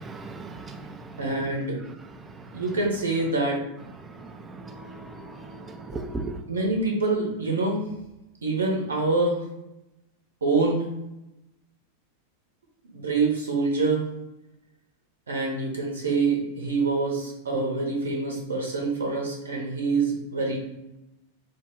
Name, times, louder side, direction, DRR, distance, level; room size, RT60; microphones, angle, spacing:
voice 1, 0.0-1.0 4.2-6.4, right 3 dB, 20° right, 7 dB, 0.4 m, -37 dB
voice 2, 1.2-1.8 2.5-3.6 5.9-6.0 6.5-7.9 8.4-9.4 10.4-10.9 12.9-14.0 15.3-20.6, right 3 dB, 70° right, 0 dB, 0.8 m, -25 dB
3.7 x 2.1 x 3.5 m, 0.92 s
figure-of-eight pair, 90°, 0 cm